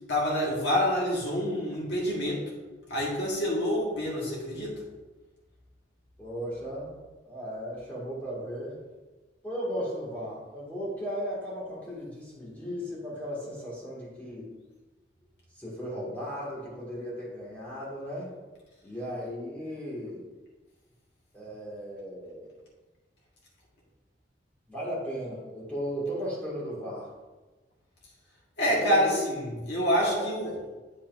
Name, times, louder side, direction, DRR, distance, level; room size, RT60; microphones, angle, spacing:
voice 1, 0.1-2.4 2.9-4.8 28.6-30.6, equal, 80° left, -5 dB, 1.6 m, -27 dB
voice 2, 6.2-7.0 7.2-8.8 9.4-14.5 15.5-18.3 18.8-20.3 21.3-22.5 24.7-27.1 28.6-29.2 30.1-30.3, equal, 10° left, -7 dB, 2.1 m, -36 dB
8.5 x 5.6 x 2.6 m, 1.2 s
head